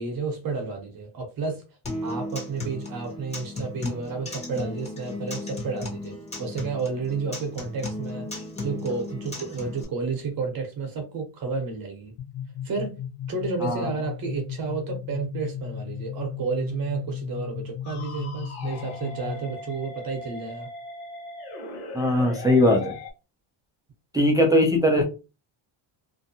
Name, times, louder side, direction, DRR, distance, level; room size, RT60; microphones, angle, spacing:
voice 1, 0.0-1.6 2.0-12.1 12.6-13.0 13.3-20.7, right 4 dB, 45° right, 0.8 m, -31 dB
Acoustic guitar, 1.9-9.8, left 2 dB, 15° left, 1.0 m, -35 dB
sound 1, 12.2-19.7, left 9 dB, 60° left, 0.7 m, -36 dB
voice 2, 13.6-13.9 21.9-22.9 24.1-25.0, left 1 dB, 10° right, 0.3 m, -20 dB
sound 2, 17.8-23.1, left 2 dB, 85° left, 1.1 m, -39 dB
2.6 x 2.1 x 2.7 m
cardioid pair, 130°, 48 cm